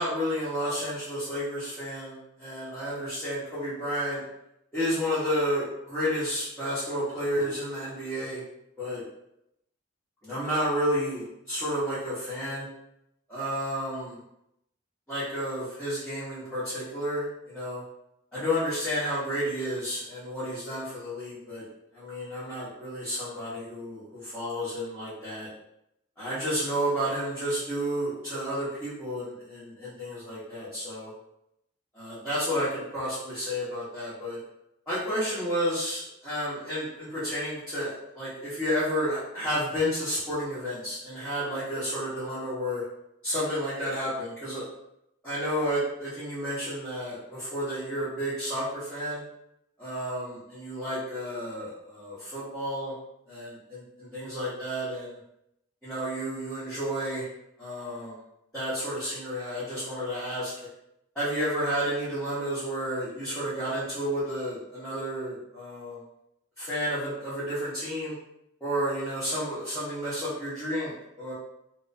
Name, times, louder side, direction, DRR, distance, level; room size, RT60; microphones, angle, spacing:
voice 1, 0.0-4.2 4.7-8.4 8.8-9.0 10.2-12.7 13.3-14.2 15.1-17.8 18.3-21.6 21.9-25.5 26.2-31.1 31.9-34.4 34.9-42.8 43.2-44.6 45.2-49.2 49.8-52.9 53.3-55.2 55.8-57.3 57.6-58.2 58.5-60.5 61.1-66.0 66.6-68.1 68.6-71.3, equal, 5° left, -14 dB, 0.9 m, -31 dB
2.4 x 2.2 x 2.5 m, 0.81 s
head